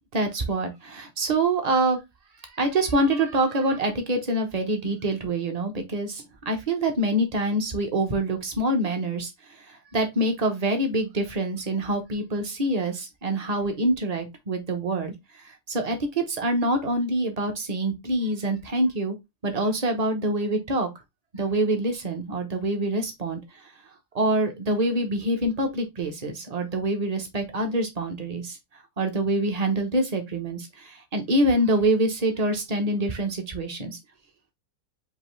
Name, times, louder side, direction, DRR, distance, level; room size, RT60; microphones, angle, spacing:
voice 1, 0.1-2.0 2.6-9.3 9.9-15.1 15.7-19.2 19.4-20.9 21.3-23.4 24.1-28.6 29.0-34.0, right 1 dB, 35° right, 0.6 m, -25 dB
5.3 x 2.7 x 3.1 m
omnidirectional pair, 1.9 m